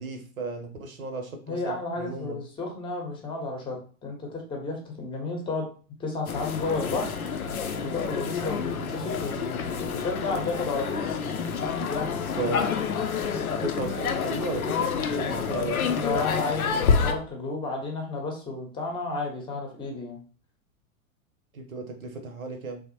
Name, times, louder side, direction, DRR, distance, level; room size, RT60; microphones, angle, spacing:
voice 1, 0.0-2.4 12.4-12.6 13.6-15.8 21.5-22.8, right 3 dB, 75° right, 5 dB, 0.9 m, -34 dB
voice 2, 1.5-5.7 6.0-7.1 7.8-11.3 11.9-12.7 15.8-20.2, left 3 dB, 10° left, 1 dB, 0.7 m, -32 dB
sound 1, 6.3-17.1, left 6 dB, 80° left, 0.5 m, -28 dB
3.2 x 2.1 x 2.9 m, 0.39 s
figure-of-eight pair, 95°, 42 cm